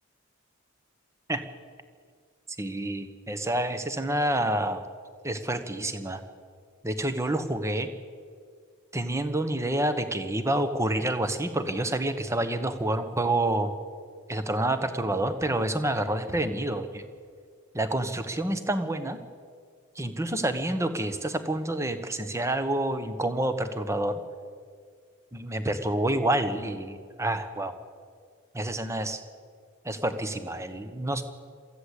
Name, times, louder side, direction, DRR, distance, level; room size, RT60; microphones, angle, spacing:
voice 1, 2.6-4.8 5.2-6.2 6.8-7.9 8.9-13.7 14.3-17.0 17.7-19.2 20.0-24.2 25.3-27.8 28.5-29.2 29.8-31.2, right 1 dB, 15° right, 10 dB, 1.1 m, -28 dB
23.0 x 15.0 x 8.2 m, 2.1 s
head